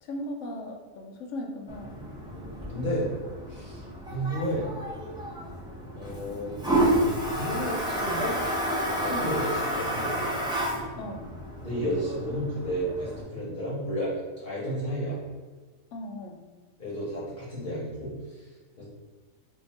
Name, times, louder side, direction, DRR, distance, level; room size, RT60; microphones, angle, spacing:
voice 1, 0.0-2.0 2.9-3.0 9.1-9.3 11.0-11.3 15.9-16.4, left 1 dB, 70° left, 1 dB, 0.9 m, -37 dB
Toilet flush, 1.7-13.2, right 1 dB, 5° right, 0.3 m, -30 dB
voice 2, 2.3-3.1 3.5-3.8 4.1-4.7 5.9-8.4 9.0-10.3 11.6-15.2 16.8-18.4 18.8-18.9, equal, 45° left, -7 dB, 1.0 m, -32 dB
2.8 x 2.6 x 4.1 m, 1.4 s
omnidirectional pair, 1.4 m